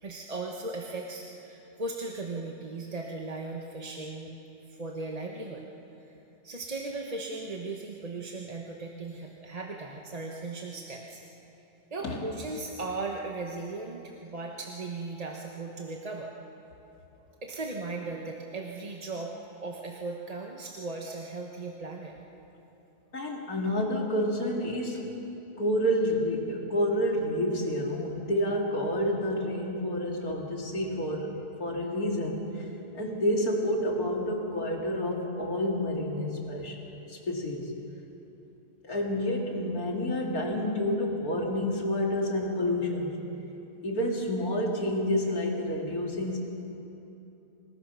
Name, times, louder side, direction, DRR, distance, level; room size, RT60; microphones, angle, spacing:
voice 1, 0.0-4.3 4.7-5.6 6.4-11.2 11.9-16.3 17.4-22.1, right 3 dB, 25° right, 0 dB, 1.1 m, -37 dB
voice 2, 23.1-25.1 25.6-32.7 32.9-36.8 37.1-37.7 38.8-43.2 43.8-46.4, left 1 dB, 65° left, 0 dB, 3.0 m, -29 dB
25.5 x 19.5 x 5.7 m, 3.0 s
omnidirectional pair, 1.7 m